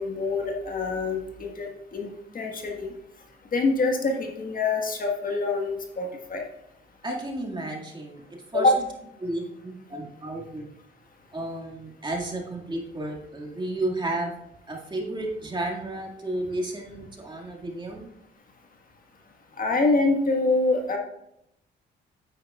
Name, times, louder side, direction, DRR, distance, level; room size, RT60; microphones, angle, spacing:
voice 1, 0.0-2.9 3.5-6.4 8.5-8.8 19.6-21.0, left 3 dB, 45° left, 2 dB, 1.5 m, -25 dB
voice 2, 7.0-8.2 8.5-8.7 9.2-10.7 11.3-14.3 14.7-18.1, right 1 dB, 20° right, 0 dB, 2.0 m, -32 dB
9.6 x 8.5 x 2.4 m, 0.80 s
cardioid pair, 90°, 20 cm